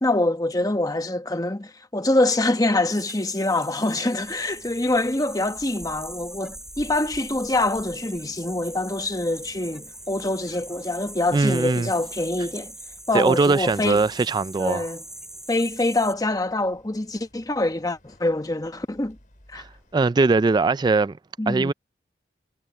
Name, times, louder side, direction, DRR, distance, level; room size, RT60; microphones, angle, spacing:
voice 1, 0.0-12.7 13.1-14.0 14.6-15.0 15.5-19.2 19.5-19.6 21.4-21.7, left 2 dB, 20° left, 1.0 m, -25 dB
sound 1, 2.9-16.1, right 1 dB, 5° right, 4.0 m, -41 dB
sound 2, 4.2-20.0, equal, 45° left, 5.3 m, -53 dB
voice 2, 11.3-11.9 13.1-14.9 19.6-19.7 19.9-21.2 21.5-21.7, right 3 dB, 25° right, 0.3 m, -21 dB
head